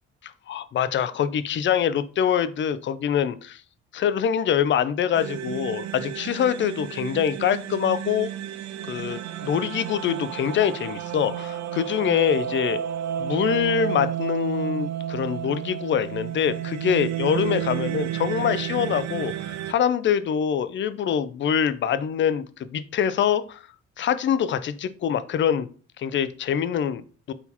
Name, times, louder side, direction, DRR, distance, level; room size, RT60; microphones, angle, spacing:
voice 1, 0.5-3.6 3.9-8.3 8.8-12.8 13.2-23.6 24.0-25.7 26.0-27.3, left 8 dB, 40° left, 14 dB, 0.4 m, -24 dB
sound 1, 5.1-19.7, right 11 dB, 65° right, 0.4 m, -31 dB
3.9 x 2.8 x 4.1 m, 0.40 s
cardioid pair, 90°, 30 cm